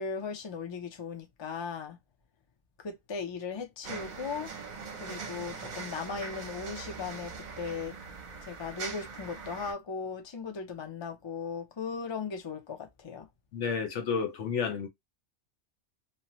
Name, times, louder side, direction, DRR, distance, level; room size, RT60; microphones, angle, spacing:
voice 1, 0.0-2.0 2.8-4.5 5.0-8.0 8.4-13.3, left 5 dB, 35° left, 0.4 m, -37 dB
sound 1, 3.8-9.7, right 5 dB, 50° right, 0.7 m, -41 dB
voice 2, 13.5-14.9, left 6 dB, 80° left, 1.1 m, -31 dB
2.8 x 2.1 x 2.9 m
omnidirectional pair, 1.2 m